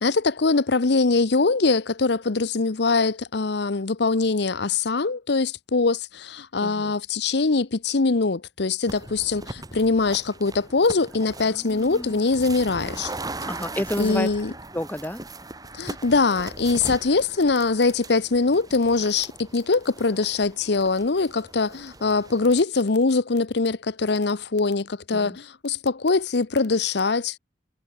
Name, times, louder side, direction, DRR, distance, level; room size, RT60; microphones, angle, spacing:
voice 1, 0.0-13.1 14.0-14.5 15.7-27.4, left 3 dB, 65° left, 0.8 m, -23 dB
voice 2, 6.6-6.9 11.5-12.3 13.4-14.3 14.7-15.2 25.1-25.4, left 1 dB, 10° left, 2.0 m, -31 dB
sound 1, 8.9-22.6, right 2 dB, 20° right, 6.2 m, -39 dB
head